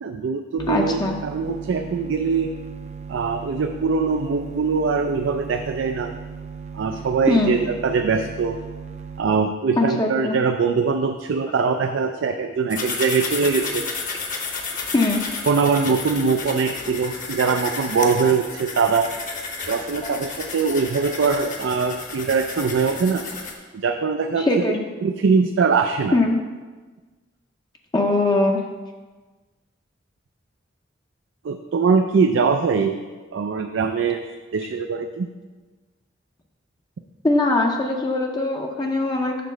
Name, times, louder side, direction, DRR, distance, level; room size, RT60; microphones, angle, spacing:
voice 1, 0.0-2.5 3.1-6.1 6.7-8.6 9.2-13.8 15.5-19.1 19.7-23.2 23.8-24.6 25.0-26.1 31.4-33.0 33.3-34.3 34.5-35.3, right 5 dB, 90° right, 5 dB, 0.4 m, -22 dB
sound 1, 0.6-9.2, right 6 dB, 35° right, 0.5 m, -37 dB
voice 2, 0.7-1.2 7.3-7.5 9.8-10.4 14.9-15.2 24.4-24.8 26.1-26.4 27.9-28.6 37.2-39.4, left 2 dB, 20° left, 1 dB, 0.5 m, -21 dB
sound 2, 12.7-23.5, left 4 dB, 45° left, 0.9 m, -32 dB
6.7 x 4.0 x 6.3 m, 1.3 s
head